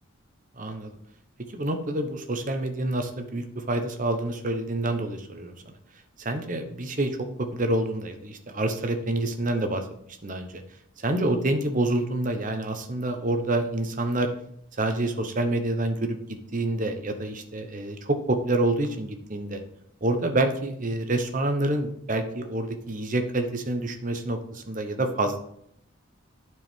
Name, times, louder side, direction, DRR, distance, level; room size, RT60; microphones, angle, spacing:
voice 1, 0.6-0.9 1.5-5.5 6.2-9.9 10.2-10.6 11.0-14.3 14.7-16.2 16.5-19.6 20.0-25.4, right 2 dB, 40° right, 6 dB, 0.8 m, -27 dB
11.0 x 4.6 x 3.6 m, 0.69 s
head